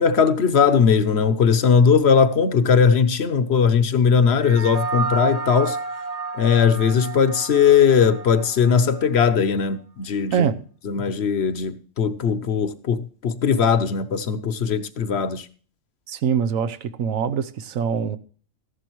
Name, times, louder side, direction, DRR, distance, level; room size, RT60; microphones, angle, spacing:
voice 1, 0.0-5.8 6.3-10.5 10.9-15.4, left 6 dB, 55° left, 1.0 m, -19 dB
sound 1, 4.4-9.0, right 4 dB, 30° right, 1.0 m, -30 dB
voice 2, 10.3-10.6 16.1-18.2, right 7 dB, 85° right, 1.2 m, -23 dB
15.0 x 11.5 x 3.1 m
omnidirectional pair, 1.4 m